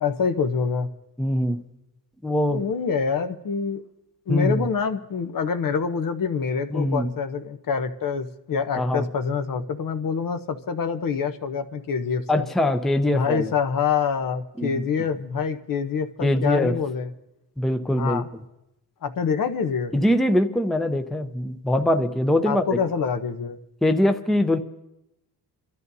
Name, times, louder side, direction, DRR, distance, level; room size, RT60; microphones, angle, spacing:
voice 1, 0.0-0.9 2.5-3.8 4.3-12.5 13.1-17.1 18.0-18.3 19.0-19.9 22.4-23.6, left 6 dB, 55° left, 8 dB, 0.9 m, -26 dB
voice 2, 1.2-1.6 2.2-2.6 4.3-4.6 6.7-7.1 8.8-9.0 12.3-13.5 14.6-14.8 16.2-16.7 17.6-18.2 19.9-22.8 23.8-24.6, left 1 dB, ahead, 7 dB, 0.6 m, -22 dB
28.5 x 13.0 x 2.7 m, 0.89 s
cardioid pair, 85°, 39 cm